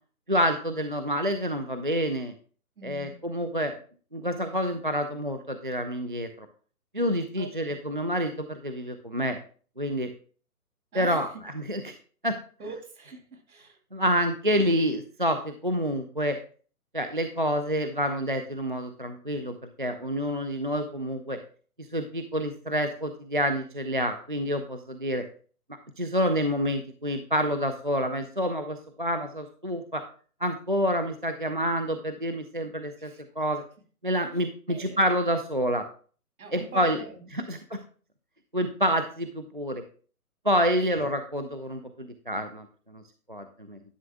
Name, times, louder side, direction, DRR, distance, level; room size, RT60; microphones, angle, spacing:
voice 1, 0.3-2.3 2.8-3.7 4.1-6.5 6.9-9.4 9.8-10.1 10.9-11.9 12.2-12.4 13.9-16.4 16.9-21.4 21.8-25.3 26.0-30.0 30.4-33.6 34.0-35.9 36.5-37.0 37.5-37.8 38.5-39.8 40.4-43.0 43.3-43.8, equal, 35° right, 7 dB, 0.4 m, -28 dB
voice 2, 2.8-3.2 7.4-7.8 10.9-11.4 11.7-12.0 12.6-13.8 33.0-33.2 34.3-35.1 36.4-37.5, right 4 dB, 65° right, 5 dB, 2.5 m, -43 dB
11.0 x 6.2 x 3.5 m, 0.41 s
hypercardioid pair, 160°, 46 cm